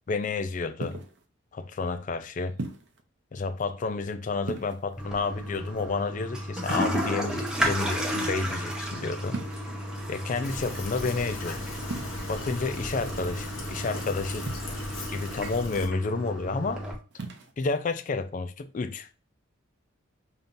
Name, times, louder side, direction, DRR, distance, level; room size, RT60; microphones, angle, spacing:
voice 1, 0.1-1.0 1.5-2.6 3.3-9.4 10.1-11.6 12.3-14.5 15.1-16.8 17.6-19.1, left 4 dB, 40° left, 0.4 m, -30 dB
sound 1, 0.8-1.2 2.6-3.0 4.4-5.1 6.7-7.4 9.3-9.8 11.9-12.1 14.5-15.0 17.1-17.5, right 2 dB, 60° right, 0.6 m, -37 dB
Toilet flush, 5.0-16.9, equal, 5° right, 0.7 m, -33 dB
Fill (with liquid), 10.4-15.9, left 2 dB, 80° left, 0.9 m, -39 dB
5.3 x 2.8 x 2.6 m
head